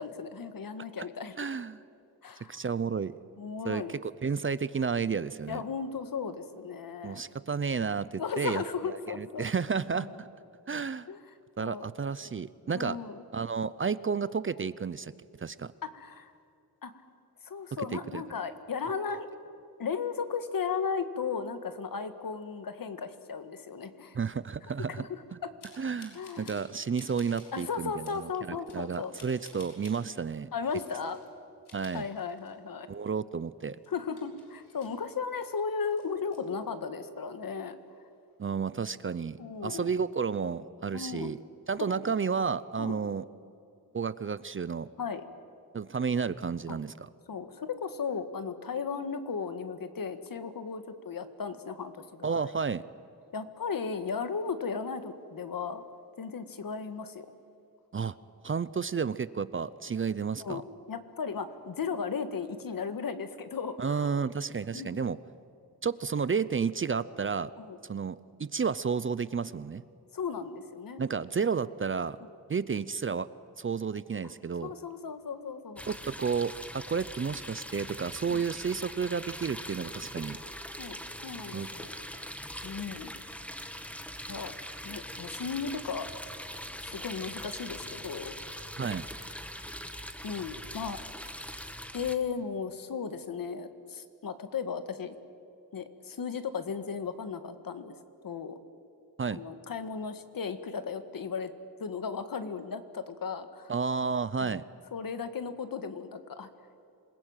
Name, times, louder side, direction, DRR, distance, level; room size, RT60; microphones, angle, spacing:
voice 1, 0.0-1.5 2.2-2.6 3.4-4.0 5.5-7.2 8.2-9.5 9.9-10.1 11.1-11.2 11.6-11.9 12.7-13.2 15.8-16.3 16.8-16.9 17.5-19.3 19.8-24.2 25.0-25.5 26.1-26.5 27.5-29.1 30.5-31.2 31.9-32.9 33.9-37.8 39.4-39.9 40.9-41.3 41.8-42.1 42.8-43.0 45.0-45.2 46.7-46.8 47.3-52.5 53.3-55.8 56.2-57.3 60.4-60.6 60.9-64.3 64.7-65.0 67.6-67.8 70.1-71.0 74.6-75.8 78.3-78.4 80.8-82.0 82.6-83.1 84.3-84.5 84.8-86.1 86.8-88.3 90.2-91.0 91.9-95.2 95.7-98.0 98.2-98.6 99.3-101.5 101.8-103.7 104.4-104.6 104.9-106.5, left 5 dB, 60° left, 10 dB, 1.8 m, -36 dB
voice 2, 1.4-1.8 2.5-3.2 3.6-5.6 7.0-8.6 8.9-10.3 10.7-11.1 11.6-13.0 13.3-15.1 15.4-15.7 17.9-18.2 18.8-19.2 24.1-25.0 25.8-30.5 31.7-32.1 32.9-33.8 38.4-41.4 41.7-43.2 43.9-44.9 45.7-47.1 52.2-52.8 57.9-58.1 58.4-60.6 63.8-65.2 65.8-67.5 67.8-69.8 71.0-72.2 72.5-73.3 73.6-74.7 75.9-80.4 81.5-81.7 88.8-89.1 99.2-99.4 103.7-104.6, right 5 dB, 35° right, 16 dB, 0.6 m, -32 dB
sound 1, 25.6-26.7 26.9-27.7 28.0-28.2 28.7-30.0 30.6-31.2 31.5-32.7 33.1-33.2 33.6-35.5 35.8-36.4, left 3 dB, 85° left, 6.1 m, -54 dB
sound 2, 75.8-92.2, equal, 5° left, 1.4 m, -42 dB
27.5 x 21.0 x 9.0 m, 2.6 s
wide cardioid pair, 155°, 38 cm